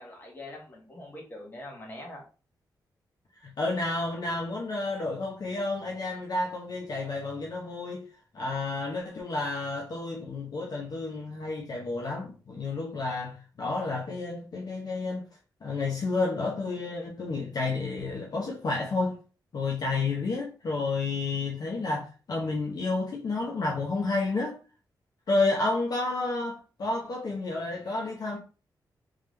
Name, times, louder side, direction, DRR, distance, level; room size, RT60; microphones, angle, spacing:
voice 1, 0.0-2.2, left 1 dB, 25° left, 1.7 m, -43 dB
voice 2, 3.4-8.1 8.3-15.2 15.6-19.2 19.5-24.6 25.3-28.4, left 3 dB, 55° left, 0.9 m, -30 dB
3.6 x 3.5 x 3.3 m
wide cardioid pair, 120°, 8 cm